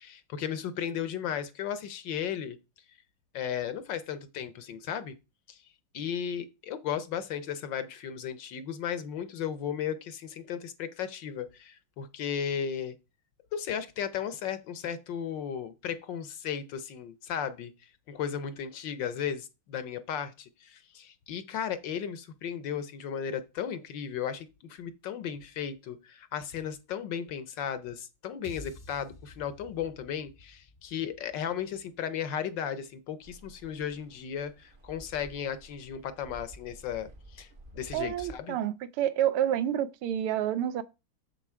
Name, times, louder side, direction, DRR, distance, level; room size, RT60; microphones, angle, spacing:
voice 1, 0.0-2.6 3.3-5.2 5.5-5.6 5.9-13.0 13.5-17.7 18.1-37.5 37.7-38.6, left 8 dB, 65° left, 1.3 m, -35 dB
sound 1, 28.4-32.8, left 3 dB, 45° left, 0.6 m, -51 dB
sailing-boat-ambience, 33.2-38.3, right 1 dB, 35° right, 0.8 m, -51 dB
voice 2, 37.9-40.8, right 11 dB, 85° right, 1.6 m, -29 dB
7.2 x 7.0 x 4.4 m
omnidirectional pair, 2.4 m